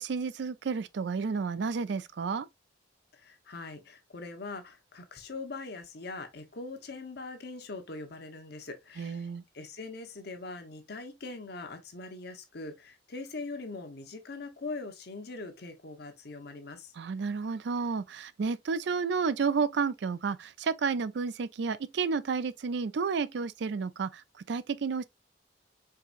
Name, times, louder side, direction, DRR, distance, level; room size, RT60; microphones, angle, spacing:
voice 1, 0.0-2.5 9.0-9.4 17.0-25.1, right 5 dB, 60° right, 0.4 m, -31 dB
voice 2, 3.1-9.3 9.5-16.9, left 3 dB, 60° left, 0.9 m, -42 dB
4.7 x 3.5 x 2.5 m
head